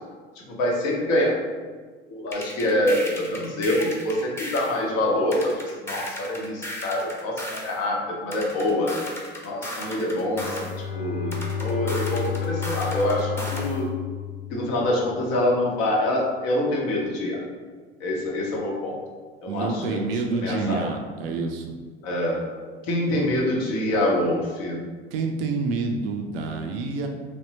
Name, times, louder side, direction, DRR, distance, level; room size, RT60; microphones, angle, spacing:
voice 1, 0.5-1.4 2.1-8.9 9.4-10.6 10.9-13.8 14.5-17.4 18.0-19.0 19.4-20.1 20.4-20.9 22.0-22.4 22.9-24.8, left 1 dB, 55° left, -2 dB, 0.9 m, -25 dB
sound 1, 2.3-4.8 5.3-7.8 8.3-10.8 11.3-13.8, left 1 dB, 10° left, 0.7 m, -35 dB
Bowed string instrument, 10.1-15.1, left 8 dB, 85° left, 0.9 m, -31 dB
voice 2, 19.5-21.7 22.9-23.3 25.1-27.1, right 4 dB, 70° right, 3 dB, 0.4 m, -28 dB
3.5 x 2.1 x 2.8 m, 1.5 s
figure-of-eight pair, 65°, 30 cm